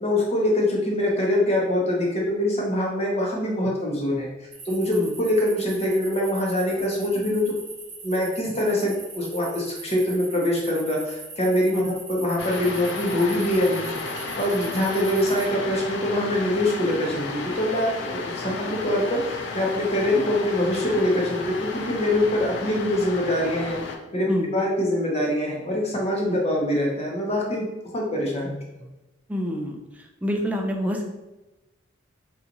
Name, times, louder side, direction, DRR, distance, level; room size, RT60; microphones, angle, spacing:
voice 1, 0.0-4.3 4.6-7.4 8.0-13.9 14.4-23.8 24.1-24.3 24.5-27.7 27.9-28.9, left 1 dB, 35° left, -2 dB, 0.8 m, -24 dB
sound 1, 4.5-15.4, right 3 dB, 40° right, 0.9 m, -41 dB
sound 2, 12.4-24.0, left 3 dB, 65° left, 0.4 m, -33 dB
voice 2, 29.3-29.8 30.2-31.0, equal, 10° right, 1 dB, 0.4 m, -27 dB
2.9 x 2.4 x 3.8 m, 1.0 s
head